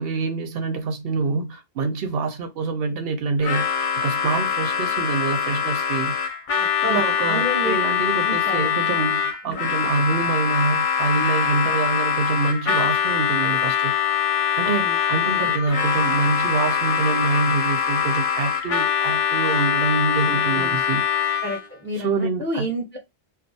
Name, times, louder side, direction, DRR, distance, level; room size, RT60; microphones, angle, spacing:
voice 1, 0.0-3.7 3.9-6.1 6.8-13.9 14.6-21.0 22.0-22.7, right 4 dB, 70° right, 0.7 m, -25 dB
Harmonica, 3.4-21.7, left 8 dB, 60° left, 0.6 m, -23 dB
voice 2, 6.6-7.7 8.2-8.9 9.4-9.7 14.6-15.0 15.3-15.5 20.3-20.8 21.4-23.0, equal, 15° left, 0.5 m, -31 dB
2.3 x 2.3 x 2.6 m
omnidirectional pair, 1.0 m